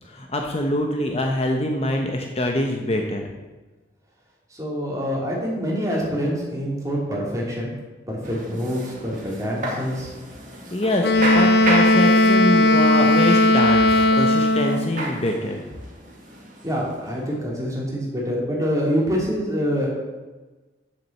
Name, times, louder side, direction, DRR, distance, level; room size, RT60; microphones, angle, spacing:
voice 1, 0.1-3.3 10.7-15.6, left 1 dB, 35° left, 2 dB, 0.9 m, -24 dB
voice 2, 4.5-7.7 8.1-10.1 16.6-19.9, equal, 15° right, -4 dB, 3.0 m, -26 dB
sound 1, 8.2-17.6, right 1 dB, 45° right, 2.1 m, -33 dB
Wind instrument woodwind instrument, 11.0-14.9, left 1 dB, 60° left, 0.7 m, -17 dB
8.5 x 7.5 x 7.4 m, 1.2 s
head